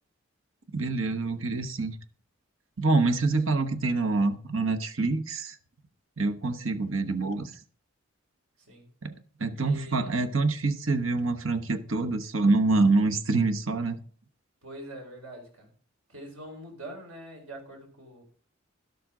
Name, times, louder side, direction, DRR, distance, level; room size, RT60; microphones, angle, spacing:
voice 1, 0.7-1.9 2.8-5.6 6.2-7.5 9.0-9.1 9.4-14.0, right 3 dB, 70° right, 1.1 m, -26 dB
voice 2, 9.5-10.2 14.6-15.7 16.1-18.2, right 1 dB, 90° right, 4.4 m, -44 dB
12.0 x 12.0 x 3.8 m
head